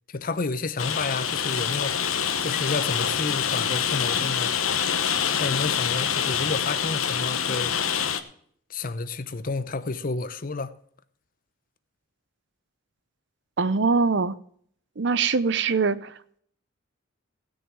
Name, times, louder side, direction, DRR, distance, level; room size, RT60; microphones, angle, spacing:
voice 1, 0.1-2.0 2.4-4.5 5.4-7.7 8.7-10.8, left 3 dB, 40° left, 0.7 m, -30 dB
Rain, 0.8-8.2, left 8 dB, 85° left, 1.1 m, -26 dB
voice 2, 13.6-14.4 15.0-16.1, right 4 dB, 55° right, 0.7 m, -23 dB
17.0 x 6.4 x 6.0 m
head